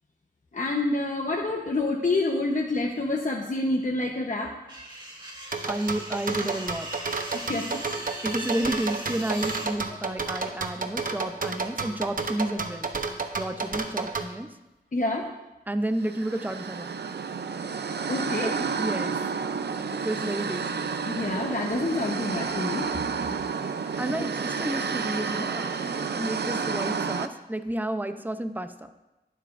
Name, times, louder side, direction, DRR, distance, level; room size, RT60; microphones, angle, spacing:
voice 1, 0.5-4.5 7.3-7.8 14.9-15.3 18.1-18.5 19.0-19.1 19.8-20.1 21.0-22.9 23.6-23.7 24.1-24.2, left 2 dB, 50° left, 0 dB, 1.0 m, -28 dB
sound 1, 4.7-9.7, right 1 dB, 30° right, 3.3 m, -39 dB
sound 2, 5.5-14.3, right 4 dB, 55° right, 0.9 m, -30 dB
voice 2, 5.7-6.9 8.2-12.9 13.4-14.5 15.7-16.9 18.4-19.2 20.0-20.9 23.3-23.5 23.8-28.9, right 1 dB, 10° right, 8 dB, 0.6 m, -31 dB
sound 3, 16.0-27.3, right 5 dB, 85° right, 0.6 m, -30 dB
20.0 x 7.6 x 2.6 m, 1.0 s
wide cardioid pair, 95°, 17 cm